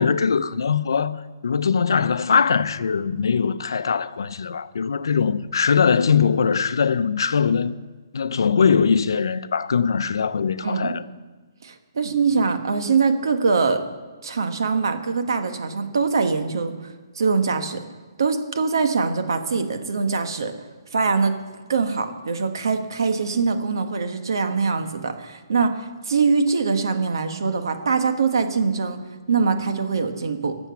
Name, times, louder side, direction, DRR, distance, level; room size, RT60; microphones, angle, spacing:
voice 1, 0.0-7.8 8.1-11.0, left 6 dB, 80° left, 0.6 m, -21 dB
voice 2, 11.6-13.8 14.2-17.8 18.2-20.5 20.9-21.4 21.7-29.0 29.3-30.6, right 4 dB, 70° right, 1.4 m, -23 dB
17.5 x 7.1 x 5.9 m
hypercardioid pair, 175°, 2 cm